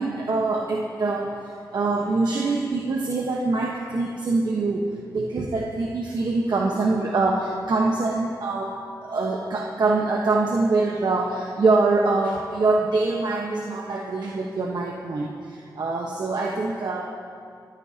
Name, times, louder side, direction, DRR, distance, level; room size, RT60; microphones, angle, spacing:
voice 1, 0.0-17.1, right 3 dB, 70° right, 0 dB, 1.1 m, -24 dB
23.5 x 14.5 x 2.9 m, 2.4 s
cardioid pair, 65°, 7 cm